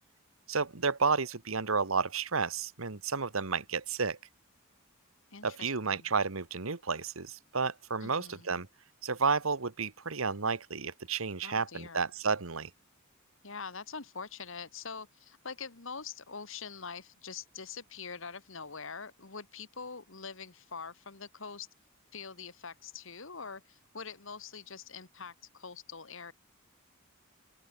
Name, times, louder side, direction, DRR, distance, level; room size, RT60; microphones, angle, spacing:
voice 1, 0.5-4.2 5.4-8.7 9.0-12.7, right 5 dB, 75° right, 1.4 m, -31 dB
voice 2, 5.3-6.1 8.0-8.6 11.4-12.0 13.4-21.7 22.1-26.3, left 5 dB, 65° left, 1.9 m, -44 dB
open air
head